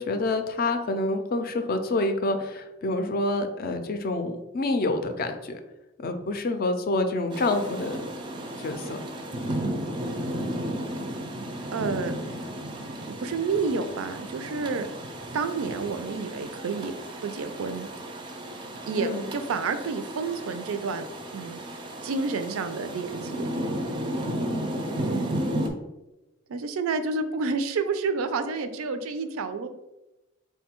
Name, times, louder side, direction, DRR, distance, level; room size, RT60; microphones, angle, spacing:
voice 1, 0.0-5.6 6.0-8.0 8.6-9.0 19.0-19.2, left 2 dB, 45° left, 7 dB, 0.4 m, -27 dB
Rain, 7.3-25.7, right 1 dB, 25° right, 0.4 m, -34 dB
voice 2, 11.7-12.1 13.1-14.9 15.3-16.9 17.2-17.9 18.9-21.1 21.3-21.6 22.0-23.5 25.0-25.4 26.5-29.7, right 4 dB, 90° right, 10 dB, 0.4 m, -29 dB
3.7 x 2.2 x 4.3 m, 1.0 s
head